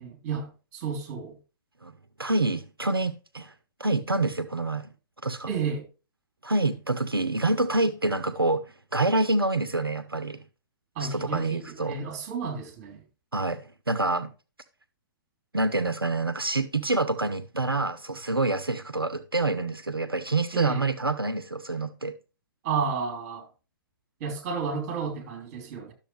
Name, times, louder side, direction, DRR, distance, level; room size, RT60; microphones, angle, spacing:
voice 1, 0.0-1.4 5.5-5.8 10.9-13.0 20.5-20.8 22.6-23.5 24.2-25.9, right 5 dB, 30° right, 3.1 m, -32 dB
voice 2, 2.2-3.5 3.8-4.9 5.2-5.5 6.4-10.4 11.0-12.0 13.3-14.3 15.5-22.1, right 2 dB, 85° right, 0.8 m, -27 dB
11.5 x 7.0 x 3.2 m
figure-of-eight pair, 125°, 12 cm